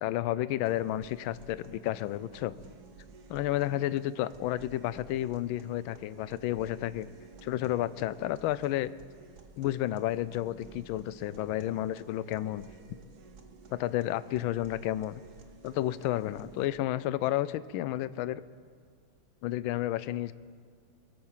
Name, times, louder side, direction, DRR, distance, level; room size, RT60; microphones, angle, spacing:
voice 1, 0.0-2.5 3.3-7.1 7.4-8.9 9.6-12.7 13.7-15.2 15.6-18.4 19.4-20.3, left 14 dB, 75° left, 16 dB, 1.3 m, -31 dB
sound 1, 0.6-16.7, right 4 dB, 55° right, 1.5 m, -53 dB
22.5 x 8.8 x 7.3 m, 2.2 s
omnidirectional pair, 2.3 m